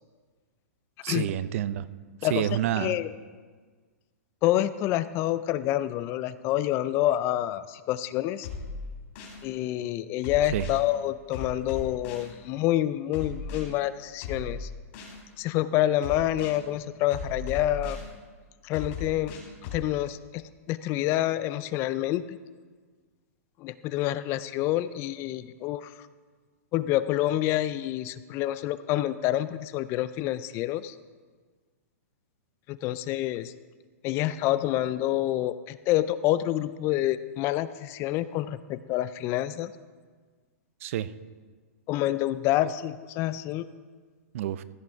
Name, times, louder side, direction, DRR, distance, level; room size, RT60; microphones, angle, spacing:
voice 1, 1.0-1.8 2.2-3.0 10.5-10.7 40.8-41.1 44.3-44.6, right 12 dB, 60° right, 16 dB, 0.5 m, -28 dB
voice 2, 2.8-3.1 4.4-8.5 9.4-14.7 15.4-18.0 18.6-19.3 19.7-20.4 20.7-22.4 23.6-25.9 26.7-31.0 32.7-33.5 34.0-39.7 41.9-43.7, left 14 dB, 30° left, 15 dB, 0.3 m, -27 dB
sound 1, 8.4-9.4 10.2-10.8 11.3-12.3 13.1-13.6 14.2-15.2 16.0-16.6 17.1-18.1 18.7-19.8, left 4 dB, 55° left, 3.5 m, -37 dB
15.0 x 6.0 x 4.5 m, 1.5 s
hypercardioid pair, 140°, 8 cm